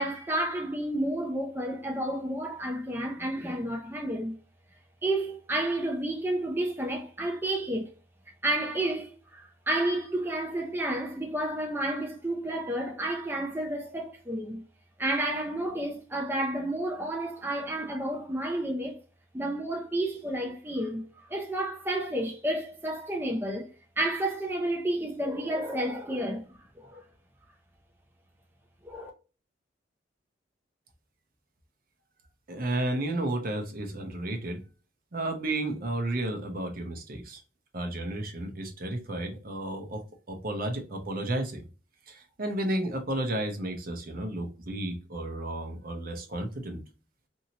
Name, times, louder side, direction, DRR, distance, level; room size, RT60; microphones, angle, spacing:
voice 1, 0.0-4.4 5.0-7.9 8.4-14.6 15.0-19.0 19.3-27.0 28.8-29.1, right 1 dB, 10° right, 0.5 m, -31 dB
voice 2, 32.5-34.6 35.1-37.4 37.7-40.0 40.3-41.7 42.1-46.8, right 1 dB, 50° right, 0.7 m, -32 dB
2.9 x 2.7 x 2.7 m
head